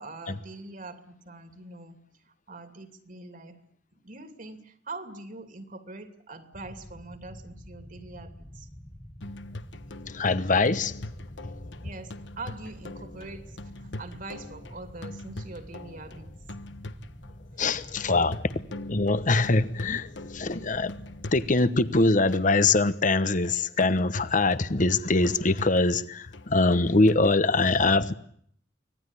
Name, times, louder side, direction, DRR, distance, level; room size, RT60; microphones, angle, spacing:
voice 1, 0.0-2.0 2.5-3.6 4.0-8.7 11.8-16.3 17.5-18.3, right 2 dB, 50° right, 2.7 m, -43 dB
sound 1, 6.5-21.6, equal, 15° left, 1.3 m, -47 dB
sound 2, 9.2-27.4, left 2 dB, 85° left, 1.3 m, -43 dB
voice 2, 10.1-11.0 17.6-18.4 18.9-21.0 21.3-28.1, left 3 dB, 45° left, 1.1 m, -23 dB
25.0 x 18.0 x 9.9 m
head